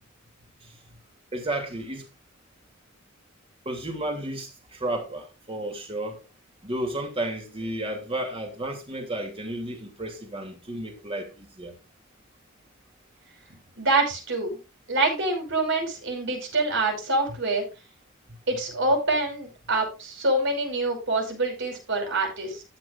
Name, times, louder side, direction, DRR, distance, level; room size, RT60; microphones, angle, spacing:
voice 1, 1.3-2.0 3.6-6.2 6.6-11.7 18.3-18.4, right 1 dB, 25° right, 2.9 m, -32 dB
voice 2, 13.8-14.6 14.9-17.6 18.5-22.6, right 2 dB, 60° right, 5.4 m, -26 dB
13.5 x 9.1 x 2.6 m
head